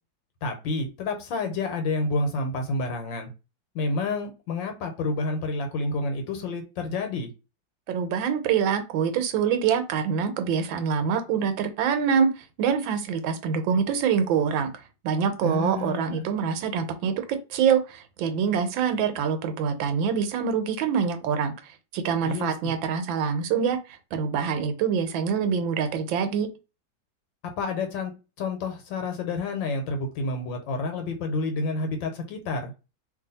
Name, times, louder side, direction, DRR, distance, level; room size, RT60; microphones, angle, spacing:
voice 1, 0.4-3.3 3.7-7.3 15.4-16.2 22.2-22.5 27.6-28.1 28.4-32.7, left 3 dB, 80° left, 5 dB, 1.5 m, -29 dB
voice 2, 7.9-14.7 15.0-21.5 21.9-23.8 24.1-26.5, right 7 dB, 80° right, 9 dB, 1.4 m, -25 dB
2.9 x 2.7 x 4.0 m, 0.29 s
omnidirectional pair, 2.1 m